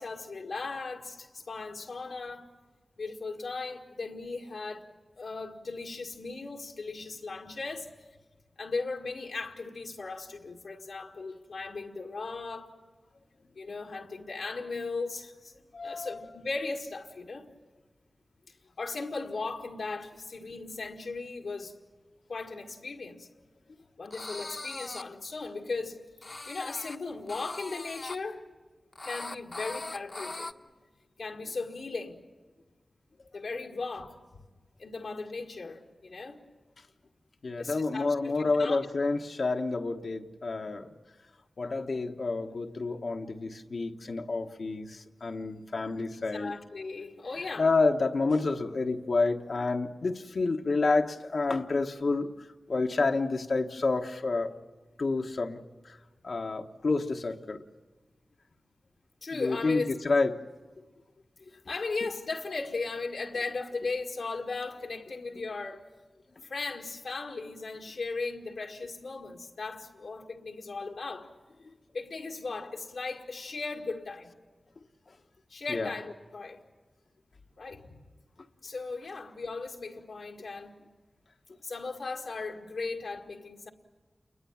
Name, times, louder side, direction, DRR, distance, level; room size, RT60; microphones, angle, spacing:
voice 1, 0.0-2.5 3.0-4.9 5.2-8.1 8.6-12.7 13.5-15.5 15.8-17.5 18.5-21.8 22.3-23.3 24.0-28.5 29.0-30.5 31.2-32.2 33.3-34.4 34.8-36.4 37.6-38.8 46.3-47.7 59.2-59.9 61.5-65.8 66.4-71.3 71.9-74.3 75.5-76.6 77.6-78.1 78.6-80.8 81.6-83.7, left 3 dB, 90° left, 1.8 m, -37 dB
voice 2, 15.7-16.2 37.4-40.9 41.6-46.5 47.6-52.3 52.7-54.6 55.0-55.6 55.8-56.0 56.2-57.6 59.3-60.4 60.8-60.9 75.7-75.9, left 3 dB, 70° left, 1.2 m, -29 dB
sound 1, 24.0-25.0 26.2-27.0 27.3-28.2 28.9-30.5, left 2 dB, 45° left, 1.0 m, -40 dB
28.5 x 22.5 x 7.2 m
cardioid pair, 50°, 0 cm